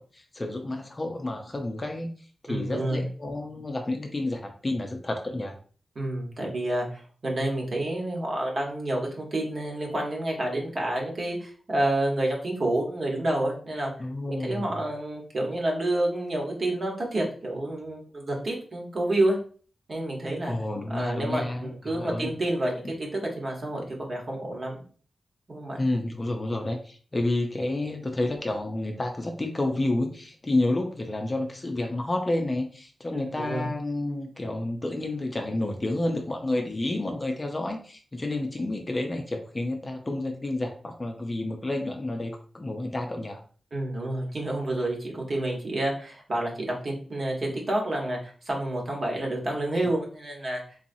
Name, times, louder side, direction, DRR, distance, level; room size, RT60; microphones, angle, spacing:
voice 1, 0.0-2.1 2.4-5.6 14.0-14.7 20.4-22.3 22.8-22.9 25.8-43.4, left 2 dB, 25° left, 3 dB, 0.5 m, -30 dB
voice 2, 2.5-3.0 5.9-13.9 14.3-19.4 19.9-20.5 20.9-24.7 25.5-25.8 33.1-33.7 43.7-50.6, right 1 dB, 45° right, -1 dB, 1.1 m, -29 dB
3.9 x 2.8 x 2.7 m, 0.42 s
wide cardioid pair, 145°, 0 cm